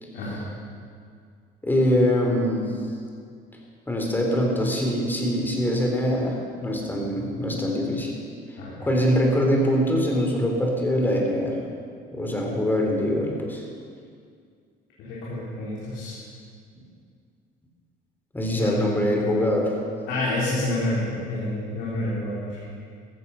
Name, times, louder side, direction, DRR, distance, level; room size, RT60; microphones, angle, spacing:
voice 1, 0.1-0.5 8.6-8.9 15.0-16.2 18.6-18.7 20.1-22.7, left 1 dB, 85° left, -8 dB, 4.1 m, -28 dB
voice 2, 1.6-2.7 3.9-8.1 8.8-11.6 12.1-13.6 18.3-19.8, equal, 10° left, 0 dB, 3.6 m, -23 dB
15.0 x 14.0 x 5.5 m, 2.2 s
cardioid pair, 110°, 17 cm